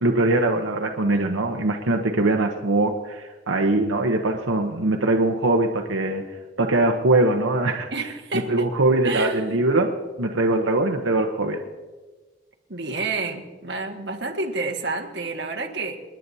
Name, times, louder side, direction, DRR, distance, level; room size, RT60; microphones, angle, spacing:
voice 1, 0.0-6.2 6.6-7.9 8.3-9.9 10.2-11.6, right 2 dB, 90° right, 3 dB, 0.9 m, -22 dB
voice 2, 7.9-8.7 9.0-9.6 12.7-16.0, right 3 dB, 60° right, 1 dB, 1.7 m, -29 dB
28.5 x 10.5 x 2.8 m, 1.3 s
head